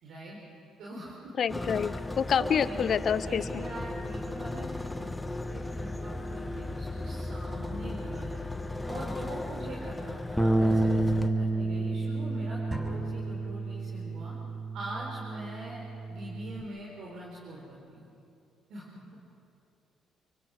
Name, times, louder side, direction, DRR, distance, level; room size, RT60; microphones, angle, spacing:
voice 1, 0.0-0.4 0.8-1.3 2.3-2.9 3.2-8.4 8.9-14.3 14.7-17.6 17.9-18.1 18.7-18.8, right 1 dB, 70° right, -4 dB, 4.6 m, -43 dB
voice 2, 1.4-1.9 2.2-3.4, left 7 dB, 55° left, 14 dB, 0.8 m, -27 dB
sound 1, 1.5-11.3, left 2 dB, 15° left, 1.5 m, -36 dB
Bass guitar, 10.4-16.6, right 2 dB, 5° right, 1.5 m, -30 dB
sound 2, 12.7-14.4, right 1 dB, 25° right, 6.0 m, -42 dB
29.5 x 23.5 x 6.5 m, 2.6 s
supercardioid pair, 60°, 0 cm